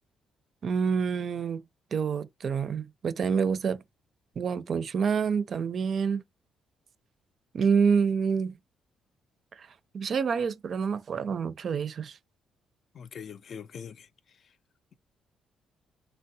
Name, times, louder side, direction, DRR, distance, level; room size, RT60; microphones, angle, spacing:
voice 1, 0.6-1.6 1.9-3.8 4.4-6.2 7.5-8.5 9.6-9.7 9.9-12.2, right 6 dB, 55° right, 0.5 m, -27 dB
voice 2, 12.9-14.1, left 7 dB, 55° left, 0.4 m, -42 dB
3.5 x 2.1 x 2.7 m
cardioid pair, 90°, 0 cm